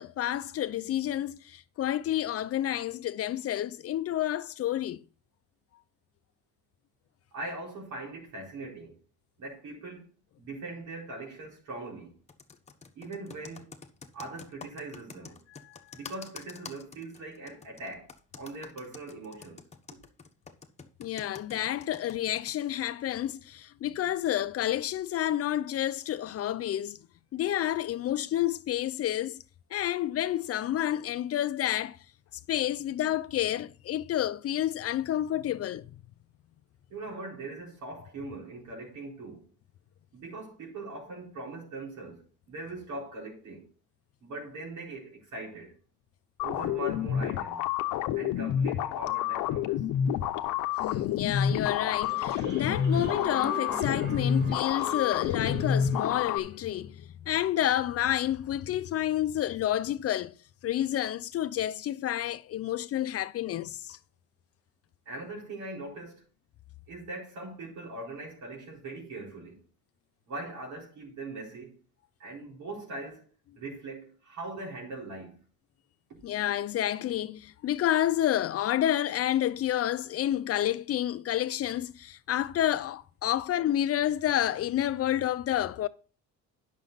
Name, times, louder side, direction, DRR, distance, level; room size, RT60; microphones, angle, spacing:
voice 1, 0.0-5.0 15.7-15.8 21.0-27.0 27.3-29.4 29.7-32.0 32.5-35.9 50.8-60.3 60.6-64.0 76.2-85.9, left 12 dB, 50° left, 0.6 m, -29 dB
voice 2, 7.3-9.0 9.4-10.1 10.4-12.1 12.9-13.7 14.1-15.4 15.9-18.1 18.3-19.6 36.9-39.5 40.1-43.7 44.2-45.7 46.4-47.6 48.1-49.8 65.1-66.2 66.9-69.6 70.3-71.8 72.2-75.4 76.1-76.2, right 2 dB, 75° right, 4.4 m, -41 dB
Computer keyboard, 12.3-22.5, left 5 dB, 20° left, 1.1 m, -47 dB
sound 1, 46.4-56.4, left 9 dB, 85° left, 0.8 m, -29 dB
sound 2, 51.3-56.6, equal, 35° right, 2.1 m, -41 dB
10.5 x 6.3 x 4.0 m
cardioid pair, 125°, 30 cm